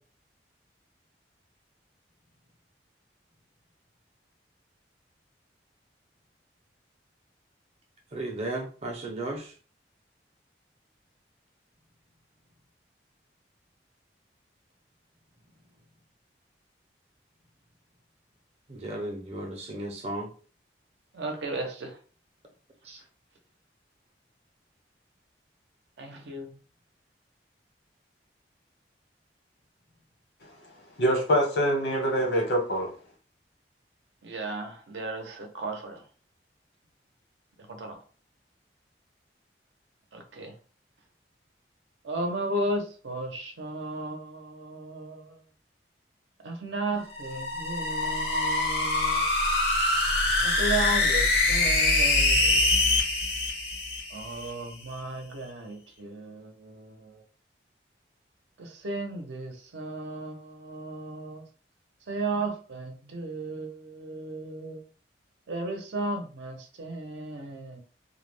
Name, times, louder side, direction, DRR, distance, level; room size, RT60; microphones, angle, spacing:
voice 1, 8.1-9.5 18.7-20.3 22.8-23.0, right 1 dB, 35° right, 0.6 m, -35 dB
voice 2, 21.1-21.9 26.0-26.5 34.2-36.0 37.7-37.9 40.1-40.5 42.0-45.4 46.4-49.2 50.4-52.7 54.1-57.2 58.6-61.4 62.1-64.8 65.5-67.8, right 2 dB, 80° right, 0.6 m, -35 dB
voice 3, 31.0-32.9, equal, 75° left, 1.0 m, -24 dB
sound 1, 47.0-54.5, left 2 dB, 60° left, 0.7 m, -24 dB
2.3 x 2.1 x 3.2 m
head